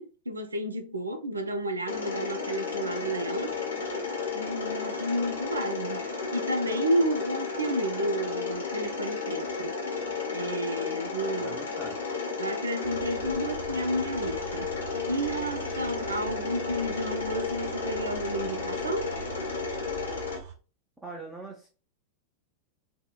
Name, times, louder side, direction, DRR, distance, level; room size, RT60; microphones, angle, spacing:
voice 1, 0.0-3.6 4.3-9.8 10.3-11.6 12.4-14.7 15.1-19.1, right 1 dB, 75° right, 0.5 m, -31 dB
Mechanisms, 1.9-20.4, left 4 dB, 65° left, 1.0 m, -33 dB
voice 2, 11.4-12.0 21.0-21.7, right 2 dB, 10° right, 0.7 m, -41 dB
sound 1, 12.8-20.5, right 8 dB, 50° right, 0.8 m, -43 dB
3.5 x 2.2 x 2.2 m
figure-of-eight pair, 90°, 0 cm